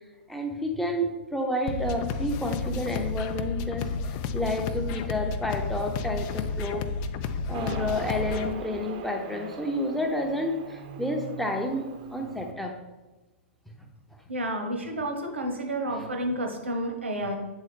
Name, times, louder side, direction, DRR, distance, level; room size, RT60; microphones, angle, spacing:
voice 1, 0.3-6.9 7.5-12.8 15.9-16.0, left 1 dB, ahead, 3 dB, 0.7 m, -30 dB
sound 1, 1.7-8.5, left 4 dB, 35° left, 0.3 m, -31 dB
Motorcycle, 7.5-12.5, right 5 dB, 45° right, 0.7 m, -40 dB
voice 2, 14.3-17.4, right 1 dB, 75° right, 3 dB, 1.0 m, -30 dB
8.3 x 3.8 x 3.4 m, 1.1 s
figure-of-eight pair, 100°, 6 cm